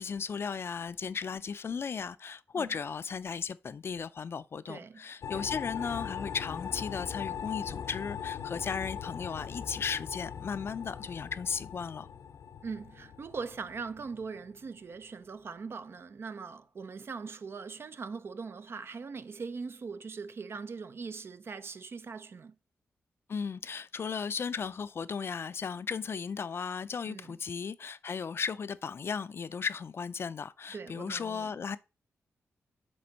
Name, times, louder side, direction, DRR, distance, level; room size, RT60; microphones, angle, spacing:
voice 1, 0.0-12.1 23.3-31.8, left 6 dB, 55° left, 0.4 m, -36 dB
voice 2, 4.7-5.0 5.3-5.5 12.6-22.5 27.0-27.4 30.7-31.5, right 5 dB, 55° right, 0.5 m, -41 dB
sound 1, 5.2-14.8, left 8 dB, 80° left, 0.7 m, -40 dB
sound 2, 5.7-10.7, equal, 5° left, 0.5 m, -56 dB
7.7 x 3.4 x 4.0 m
cardioid pair, 65°, 5 cm